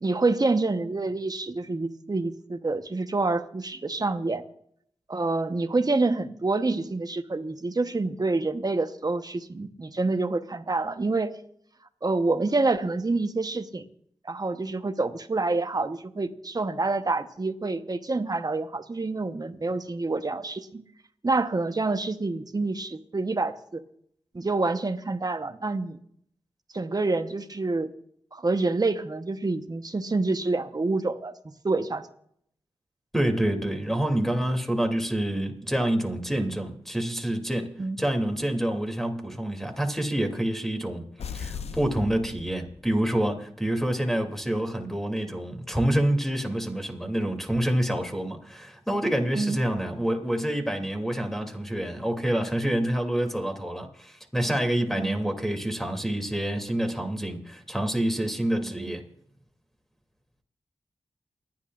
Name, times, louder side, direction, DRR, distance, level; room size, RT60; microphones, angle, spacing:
voice 1, 0.0-4.4 5.1-11.3 12.0-13.9 14.2-20.8 21.2-23.8 24.3-26.0 26.7-27.9 28.3-32.1 37.8-38.0 49.3-49.6 55.0-55.2 58.6-58.9, right 3 dB, 35° right, 1.1 m, -27 dB
voice 2, 33.1-37.7 38.0-59.0, right 1 dB, 5° left, 2.8 m, -27 dB
sound 1, 41.2-43.1, left 6 dB, 75° left, 0.6 m, -38 dB
29.0 x 10.5 x 2.5 m
cardioid pair, 50°, 11 cm